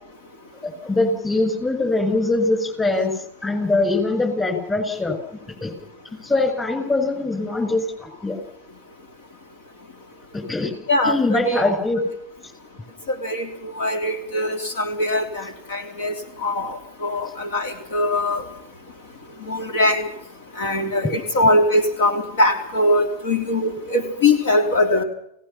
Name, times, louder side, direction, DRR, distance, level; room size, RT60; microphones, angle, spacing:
voice 1, 0.6-5.2 5.6-5.7 6.2-8.4 10.3-10.7 11.0-12.0, left 2 dB, 15° left, 8 dB, 6.7 m, -22 dB
voice 2, 10.9-11.6 13.1-16.1 16.4-18.4 19.5-20.1 20.6-25.0, left 1 dB, 75° left, 7 dB, 3.5 m, -21 dB
29.0 x 18.5 x 5.9 m, 0.75 s
hypercardioid pair, 130°, 0 cm